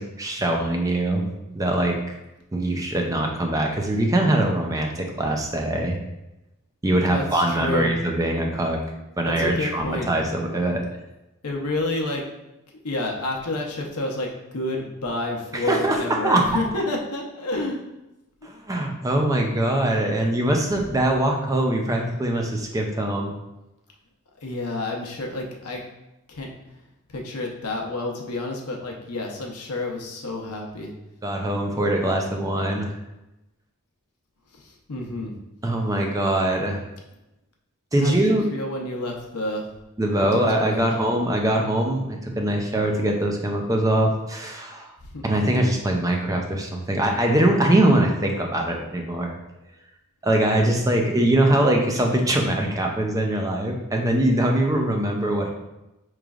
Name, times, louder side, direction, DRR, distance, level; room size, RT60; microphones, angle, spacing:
voice 1, 0.0-2.0 2.5-6.0 6.8-8.8 9.2-10.8 15.5-16.6 18.4-23.3 31.2-32.9 35.6-36.8 37.9-38.4 40.0-44.9 45.2-49.3 50.2-55.5, right 1 dB, 15° right, 2 dB, 0.4 m, -22 dB
voice 2, 7.1-7.9 9.3-10.1 11.4-12.2 12.8-14.3 14.5-17.8 24.4-25.8 26.3-26.5 27.1-30.9 34.9-35.3 38.0-39.7 40.3-41.1 45.1-45.2, left 2 dB, 85° left, 1 dB, 0.7 m, -29 dB
4.9 x 3.1 x 2.4 m, 0.96 s
head